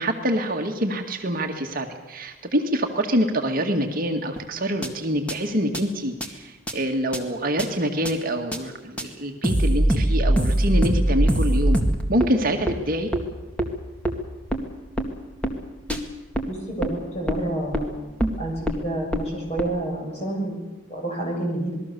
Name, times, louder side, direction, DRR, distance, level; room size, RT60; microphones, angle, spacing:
voice 1, 0.0-11.8 12.1-13.1, equal, 45° right, 3 dB, 2.0 m, -25 dB
sound 1, 4.4-4.5 4.8-4.9 5.3-5.4 5.7-5.8 6.2-6.3 6.7-6.8 7.1-7.2 7.6-7.7 8.1-8.2 8.5-8.6 9.0-9.1 9.4-12.3 12.7-12.8 13.1-13.2 13.6-13.7 14.1-14.2 14.5-14.6 15.0-15.1 15.4-15.5 15.9-16.0 16.3-16.5 16.8-16.9 17.3-17.4 17.7-17.8 18.2-18.3 18.7-18.8 19.1-19.2 19.6-19.7, right 1 dB, 5° left, 2.1 m, -21 dB
voice 2, 16.5-18.1 18.4-18.6 18.8-21.8, right 1 dB, 30° left, -1 dB, 7.4 m, -29 dB
27.0 x 20.5 x 7.0 m, 1.1 s
head